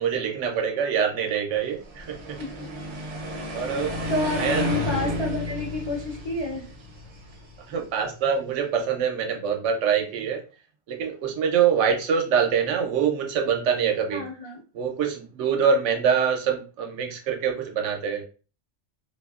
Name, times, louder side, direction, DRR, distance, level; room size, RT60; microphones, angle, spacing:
voice 1, 0.0-2.4 3.5-3.9 4.4-4.6 5.0-5.1 7.7-10.4 10.9-14.2 14.7-18.2, right 7 dB, 80° right, 2 dB, 0.9 m, -24 dB
sound 1, 1.8-8.0, equal, 45° right, 0.5 m, -32 dB
voice 2, 4.1-6.7 14.1-14.6, left 2 dB, 35° left, -3 dB, 0.4 m, -29 dB
2.7 x 2.5 x 2.3 m, 0.36 s
omnidirectional pair, 1.2 m